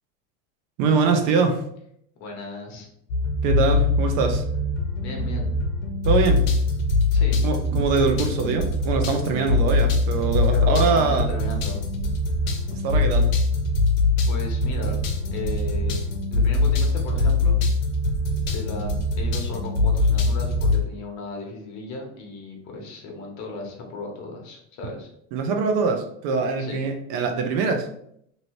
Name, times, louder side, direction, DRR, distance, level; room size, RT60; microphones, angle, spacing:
voice 1, 0.8-1.6 3.4-4.4 6.0-6.5 7.4-11.3 12.7-13.3 25.3-27.9, right 4 dB, 55° right, 5 dB, 0.6 m, -23 dB
voice 2, 2.2-2.9 5.0-5.5 7.1-7.4 10.5-11.8 14.3-15.0 15.3-16.0 16.3-17.6 18.5-25.1 26.6-26.8, left 3 dB, 45° left, 0 dB, 0.9 m, -35 dB
sound 1, 3.1-20.8, left 2 dB, 90° left, 0.7 m, -22 dB
2.7 x 2.7 x 3.0 m, 0.70 s
supercardioid pair, 130°, 39 cm